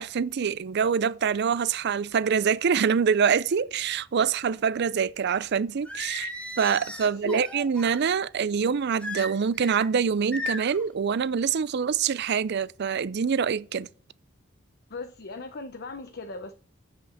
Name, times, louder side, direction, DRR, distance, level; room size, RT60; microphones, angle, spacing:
voice 1, 0.0-6.3 6.6-13.9, right 6 dB, 55° right, 0.4 m, -25 dB
Singing, 5.9-8.0 9.0-9.9 10.3-10.8, left 1 dB, 5° left, 2.0 m, -36 dB
voice 2, 7.0-7.5 14.9-16.5, left 2 dB, 55° left, 0.8 m, -38 dB
7.7 x 6.0 x 7.1 m
head